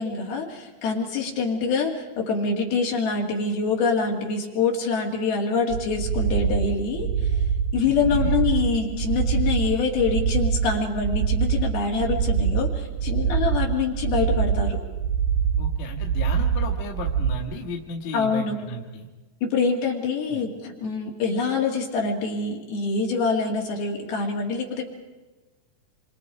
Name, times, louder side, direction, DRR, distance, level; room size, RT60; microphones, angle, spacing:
voice 1, 0.0-7.1 7.7-14.8 18.1-18.6 19.4-24.8, left 4 dB, 65° left, 0 dB, 4.6 m, -25 dB
sound 1, 5.7-17.4, right 7 dB, 85° right, 3.3 m, -24 dB
voice 2, 7.8-8.3 15.6-19.1 20.3-20.5, left 1 dB, 50° left, 1 dB, 2.9 m, -34 dB
27.5 x 26.0 x 5.0 m, 1.2 s
omnidirectional pair, 4.9 m